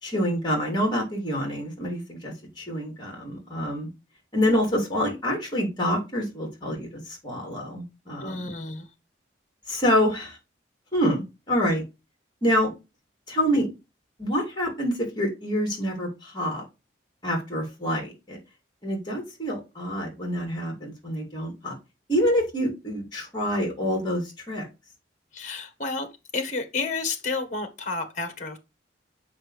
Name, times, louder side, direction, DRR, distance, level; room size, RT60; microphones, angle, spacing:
voice 1, 0.0-3.9 4.3-8.5 9.7-10.4 10.9-11.2 11.5-11.8 12.4-12.7 13.3-13.7 14.2-16.6 17.2-18.4 18.8-21.7 22.1-24.7, equal, 25° left, 3.0 m, -26 dB
voice 2, 8.2-8.9 25.3-28.6, left 3 dB, 40° left, 1.5 m, -31 dB
7.3 x 5.7 x 3.3 m
head